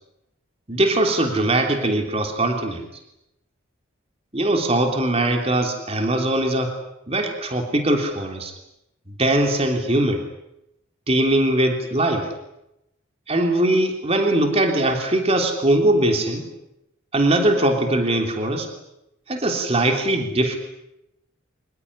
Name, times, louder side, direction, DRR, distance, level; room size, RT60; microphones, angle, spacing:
voice 1, 0.7-2.8 4.3-6.7 7.1-8.5 9.2-10.2 11.1-12.3 13.3-16.4 17.1-18.7 19.3-20.6, right 1 dB, 30° right, 4 dB, 3.3 m, -21 dB
25.5 x 20.5 x 9.9 m, 0.87 s
head